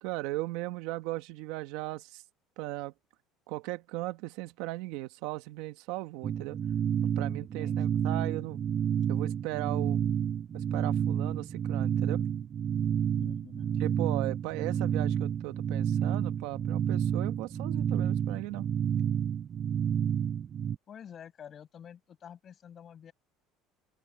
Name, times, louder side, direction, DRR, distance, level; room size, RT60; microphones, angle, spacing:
voice 1, 0.0-2.2 2.6-2.9 3.5-6.6 7.2-8.6 9.1-10.0 10.5-12.2 13.8-18.7, right 19 dB, 80° right, 1.3 m, -37 dB
sound 1, 6.2-20.8, right 8 dB, 35° right, 0.4 m, -30 dB
voice 2, 7.3-8.3 13.1-13.9 20.9-23.1, left 8 dB, 35° left, 5.6 m, -49 dB
open air
cardioid pair, 140°, 0 cm